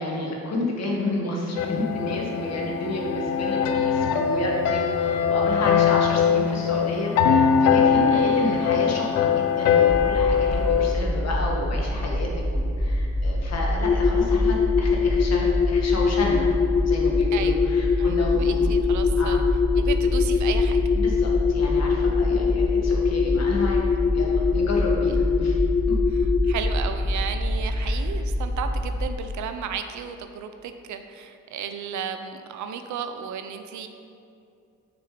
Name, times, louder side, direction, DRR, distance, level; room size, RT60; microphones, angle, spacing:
voice 1, 0.0-16.5 16.8-18.7 19.2-19.4 20.9-23.8 24.1-25.6 25.9-26.0 27.8-28.0, left 2 dB, 60° left, -2 dB, 1.8 m, -30 dB
sound 1, 1.6-10.9, left 7 dB, 85° left, 0.7 m, -22 dB
voice 2, 8.1-8.6 17.3-17.7 18.0-19.4 19.8-20.8 26.1-33.9, right 7 dB, 75° right, 8 dB, 0.7 m, -34 dB
sound 2, 9.9-29.1, equal, 10° right, 0.8 m, -26 dB
sound 3, 13.8-26.6, left 7 dB, 30° left, 0.4 m, -23 dB
6.7 x 6.1 x 5.1 m, 2.6 s
cardioid pair, 90°, 30 cm